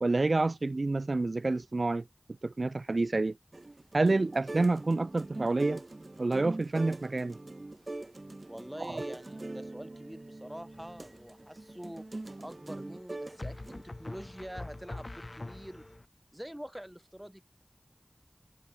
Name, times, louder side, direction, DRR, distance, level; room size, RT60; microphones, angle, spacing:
voice 1, 0.0-2.0 2.4-3.4 3.9-5.8 6.2-7.4 8.8-9.0, right 2 dB, 85° right, 0.3 m, -28 dB
sound 1, 3.5-13.8, right 2 dB, 60° right, 3.3 m, -42 dB
voice 2, 8.5-12.1 12.4-15.8 16.3-17.4, equal, 10° right, 6.9 m, -45 dB
sound 2, 9.9-16.0, equal, 10° left, 6.4 m, -59 dB
sound 3, 10.7-11.3 13.4-16.1, left 2 dB, 60° left, 1.2 m, -43 dB
wide cardioid pair, 45°, 0 cm